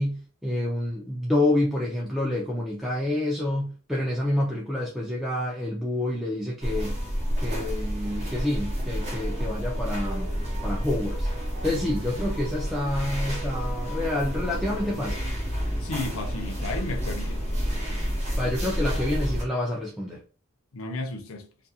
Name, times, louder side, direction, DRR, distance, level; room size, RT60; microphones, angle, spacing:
voice 1, 0.0-7.0 7.4-10.3 10.6-11.3 11.6-15.2 18.4-20.2, left 1 dB, ahead, 0.3 m, -28 dB
sound 1, 6.6-19.4, equal, 30° right, 0.7 m, -29 dB
voice 2, 15.8-17.4 20.7-21.5, left 2 dB, 65° left, 0.5 m, -33 dB
2.4 x 2.3 x 2.7 m
head